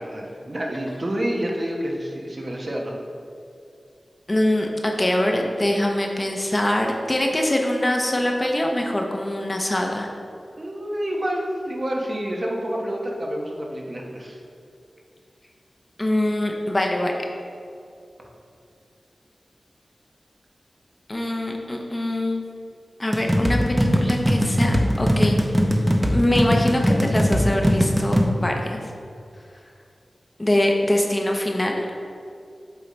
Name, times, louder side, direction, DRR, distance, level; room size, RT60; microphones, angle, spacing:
voice 1, 0.0-2.9 10.6-14.4, equal, 45° right, -1 dB, 1.0 m, -28 dB
voice 2, 4.3-10.1 16.0-17.2 21.1-22.4 23.0-25.4 26.1-28.8 30.4-32.0, left 1 dB, 25° left, 1 dB, 0.7 m, -23 dB
sound 1, 23.1-28.3, equal, 15° right, 0.6 m, -20 dB
7.8 x 3.7 x 4.2 m, 2.4 s
wide cardioid pair, 70°, 0 cm